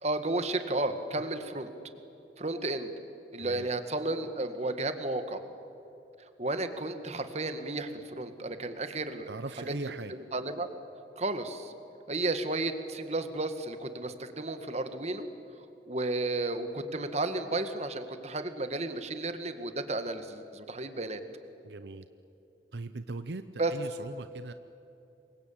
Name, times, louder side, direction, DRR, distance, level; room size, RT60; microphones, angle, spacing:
voice 1, 0.0-1.7 2.4-2.9 3.3-5.4 6.4-9.3 10.1-10.7 11.2-11.7 12.1-15.3 15.9-21.2 23.6-23.7, right 2 dB, 40° right, 9 dB, 1.8 m, -33 dB
voice 2, 3.4-3.7 9.3-10.1 21.6-22.1 22.7-24.5, right 2 dB, 75° right, 11 dB, 0.8 m, -39 dB
27.5 x 23.5 x 8.8 m, 2.9 s
head